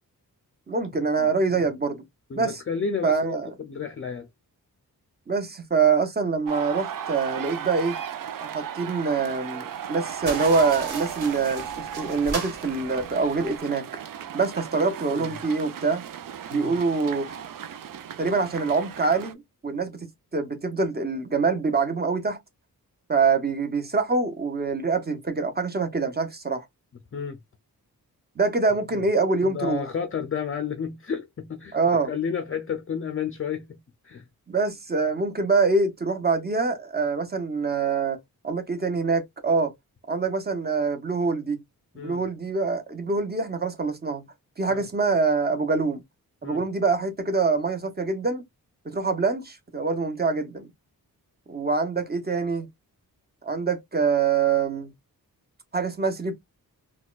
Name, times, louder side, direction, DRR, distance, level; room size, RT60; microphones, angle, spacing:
voice 1, 0.7-2.0 2.3-2.6 3.0-3.5 5.3-8.0 8.4-13.9 14.3-16.0 16.5-17.5 18.2-19.4 19.6-20.0 20.3-22.4 23.1-26.6 28.4-29.8 31.7-32.1 34.5-38.2 38.4-39.7 40.1-41.6 41.9-44.2 44.6-46.0 46.4-48.4 48.8-50.7 51.5-52.7 53.4-54.9 55.7-56.3, right 4 dB, 25° right, 0.8 m, -25 dB
voice 2, 1.2-1.6 2.3-4.3 14.8-15.3 16.5-16.7 27.1-27.4 29.4-33.8 34.0-34.2 41.9-42.2 44.7-44.9 46.4-46.6, left 6 dB, 35° left, 0.5 m, -32 dB
sound 1, 6.5-19.3, right 9 dB, 60° right, 0.5 m, -36 dB
sound 2, 10.2-13.6, right 4 dB, 90° right, 1.3 m, -37 dB
4.0 x 2.3 x 2.4 m
wide cardioid pair, 105°, 37 cm